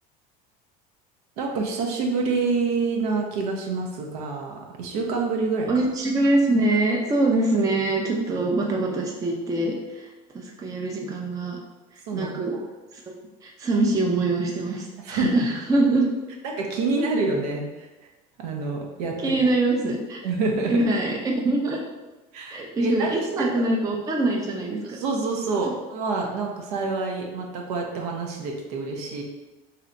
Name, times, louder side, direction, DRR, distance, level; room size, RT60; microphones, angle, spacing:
voice 1, 1.4-5.7 8.1-8.4 12.1-12.6 15.0-15.5 16.4-17.9 18.4-19.4 20.2-20.8 22.3-23.7 24.8-29.2, right 3 dB, 85° right, 0 dB, 0.7 m, -27 dB
voice 2, 5.7-10.1 10.3-11.6 11.9-12.6 12.9-13.0 13.4-16.1 19.2-20.2 20.7-21.8 22.5-25.0 25.6-25.7, right 2 dB, 20° right, 0 dB, 0.4 m, -24 dB
3.2 x 2.9 x 2.5 m, 1.1 s
supercardioid pair, 120°, 19 cm